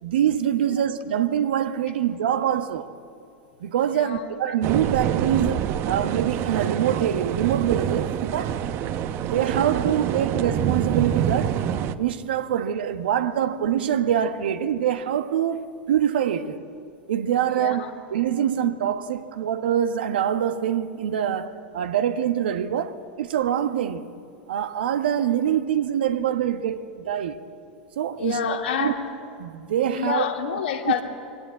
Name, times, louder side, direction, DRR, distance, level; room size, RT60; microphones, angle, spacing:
voice 1, 0.0-2.9 3.6-8.6 9.2-11.6 12.0-16.6 17.1-17.8 18.1-24.1 24.5-27.4 28.0-28.4 28.8-28.9 29.4-30.2, right 9 dB, 75° right, 1.3 m, -24 dB
voice 2, 3.8-4.6 17.5-17.9 28.2-29.1 29.9-31.0, left 7 dB, 75° left, 2.8 m, -28 dB
sound 1, 4.6-11.9, right 9 dB, 45° right, 1.0 m, -26 dB
24.0 x 18.0 x 8.7 m
hypercardioid pair, 100°, 6 cm